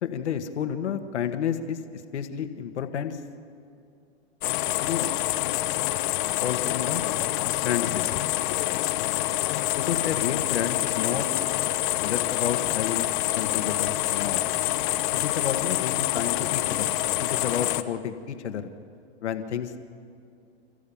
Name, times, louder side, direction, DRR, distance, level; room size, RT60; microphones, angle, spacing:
voice 1, 0.0-3.2 4.8-5.1 6.4-7.0 7.6-8.0 9.7-11.3 12.0-13.1 13.3-14.4 15.1-16.9 17.2-18.7 19.2-19.7, left 8 dB, 75° left, 7 dB, 1.9 m, -30 dB
sound 1, 4.4-17.8, left 16 dB, 45° left, 1.0 m, -26 dB
30.0 x 15.0 x 7.3 m, 2.4 s
hypercardioid pair, 135°, 34 cm